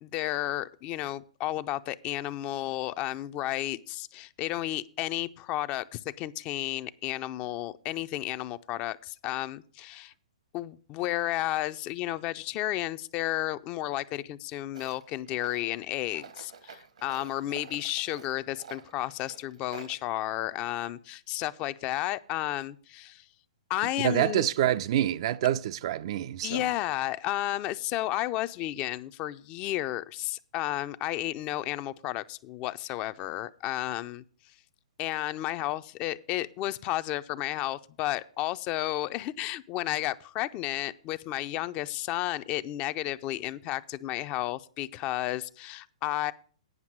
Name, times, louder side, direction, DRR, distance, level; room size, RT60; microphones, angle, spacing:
voice 1, 0.0-10.1 10.5-23.2 23.7-24.5 26.4-34.2 35.0-46.3, left 15 dB, 35° left, 0.5 m, -32 dB
Tools, 14.7-20.0, right 6 dB, 75° right, 1.1 m, -49 dB
voice 2, 24.0-26.7, right 12 dB, 50° right, 0.4 m, -27 dB
9.5 x 5.8 x 7.3 m
hypercardioid pair, 125°, 4 cm